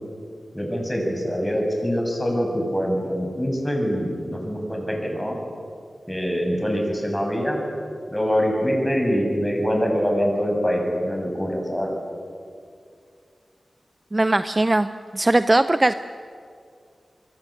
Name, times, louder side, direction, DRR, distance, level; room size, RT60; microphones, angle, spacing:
voice 1, 0.5-5.4 6.1-7.6 8.1-12.0, equal, 10° left, 1 dB, 7.1 m, -24 dB
voice 2, 14.1-15.9, right 2 dB, 25° right, 11 dB, 0.7 m, -20 dB
26.0 x 23.5 x 8.7 m, 2.3 s
wide cardioid pair, 80°, 0 cm